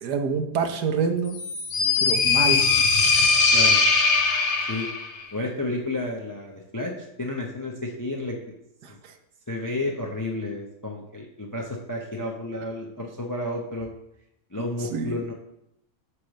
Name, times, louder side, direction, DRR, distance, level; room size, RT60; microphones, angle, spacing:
voice 1, 0.0-1.4 2.0-2.6 8.8-9.1 14.8-15.2, right 5 dB, 80° right, 6 dB, 1.4 m, -27 dB
sound 1, 1.3-5.1, left 4 dB, 50° left, 1.0 m, -20 dB
voice 2, 5.3-6.9 7.2-8.4 9.5-13.9 14.5-15.3, left 2 dB, 25° left, 1 dB, 0.4 m, -31 dB
7.7 x 3.4 x 6.3 m, 0.81 s
omnidirectional pair, 1.7 m